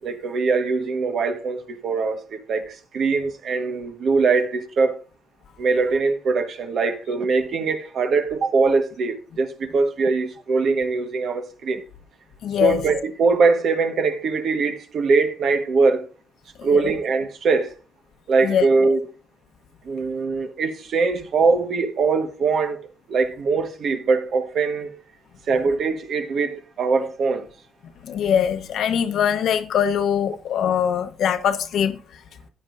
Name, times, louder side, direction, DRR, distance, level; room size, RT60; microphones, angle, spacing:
voice 1, 0.0-5.0 5.6-11.8 12.6-16.1 16.6-17.7 18.3-19.0 19.8-25.0 25.5-27.5, right 4 dB, 60° right, 1.4 m, -22 dB
voice 2, 12.4-12.8 16.6-16.9 18.4-18.7 28.0-32.0, left 8 dB, 70° left, 1.1 m, -22 dB
13.0 x 9.6 x 2.6 m
cardioid pair, 90°, 0 cm